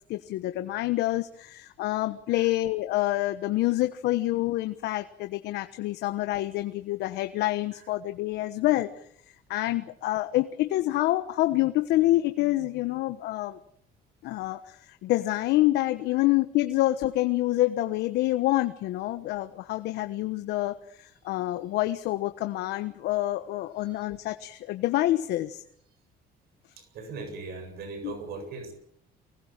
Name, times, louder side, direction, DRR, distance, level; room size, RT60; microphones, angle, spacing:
voice 1, 0.1-9.0 9.5-13.6 14.2-25.6 28.0-28.1, left 16 dB, 85° left, 9 dB, 1.2 m, -27 dB
voice 2, 26.8-28.7, right 4 dB, 70° right, 7 dB, 7.7 m, -40 dB
24.5 x 20.0 x 7.5 m, 0.64 s
cardioid pair, 110°, 17 cm